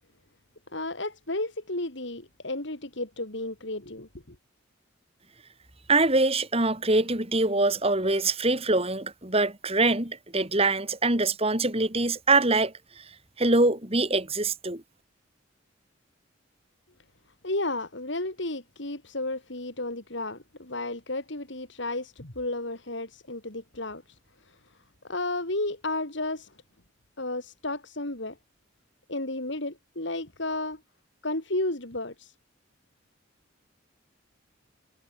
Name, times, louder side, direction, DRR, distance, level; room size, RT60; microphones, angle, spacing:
voice 1, 0.7-4.3 17.4-24.6 25.0-26.5 27.2-28.4 29.1-30.8 31.2-32.3, left 2 dB, 60° left, 3.3 m, -33 dB
voice 2, 5.9-12.7 13.4-14.8, right 2 dB, 30° right, 4.1 m, -24 dB
head